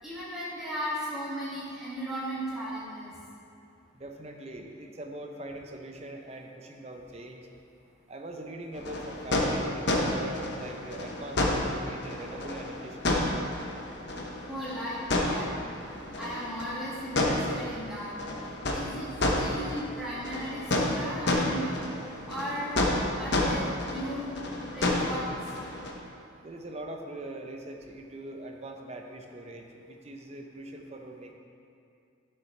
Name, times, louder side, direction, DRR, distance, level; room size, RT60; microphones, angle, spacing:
voice 1, 0.0-3.1 14.5-15.5 16.2-18.1 18.5-19.1 19.4-21.8 22.3-25.2, equal, ahead, -10 dB, 1.9 m, -36 dB
voice 2, 3.9-7.4 8.1-13.2 26.4-31.3, right 1 dB, 30° right, 2 dB, 0.6 m, -42 dB
sound 1, 8.7-25.9, left 1 dB, 55° left, 0.8 m, -30 dB
9.8 x 6.7 x 3.3 m, 2.5 s
head